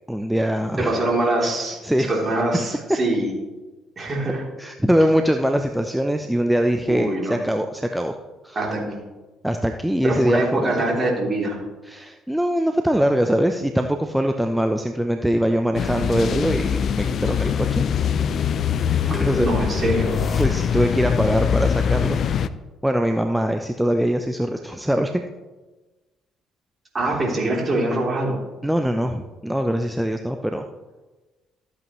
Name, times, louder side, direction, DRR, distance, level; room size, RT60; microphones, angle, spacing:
voice 1, 0.1-1.0 1.8-2.1 4.6-8.2 8.4-8.6 9.4-10.9 11.9-17.9 18.9-19.6 20.4-22.2 22.8-25.2 28.6-30.7, equal, 5° right, 5 dB, 0.7 m, -22 dB
voice 2, 0.8-3.3 4.0-4.4 6.9-7.4 8.5-9.0 10.0-11.6 19.1-20.1 26.9-28.4, right 2 dB, 35° right, -1 dB, 3.3 m, -24 dB
sound 1, 15.7-22.5, left 7 dB, 50° left, 0.4 m, -23 dB
sound 2, 19.1-21.0, left 3 dB, 35° left, 1.3 m, -30 dB
13.5 x 8.4 x 3.1 m, 1.2 s
hypercardioid pair, 50°, 0 cm